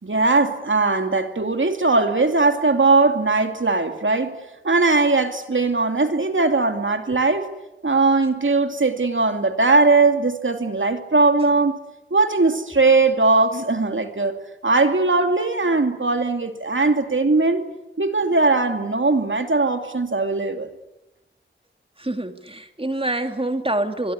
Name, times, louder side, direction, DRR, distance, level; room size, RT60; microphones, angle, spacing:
voice 1, 0.0-7.5 7.8-11.8 12.1-14.4 14.6-17.7 18.0-20.7, right 3 dB, 80° right, 6 dB, 2.6 m, -19 dB
voice 2, 22.0-24.1, right 1 dB, 30° right, 6 dB, 2.8 m, -26 dB
24.0 x 22.5 x 9.8 m, 0.95 s
wide cardioid pair, 50°, 20 cm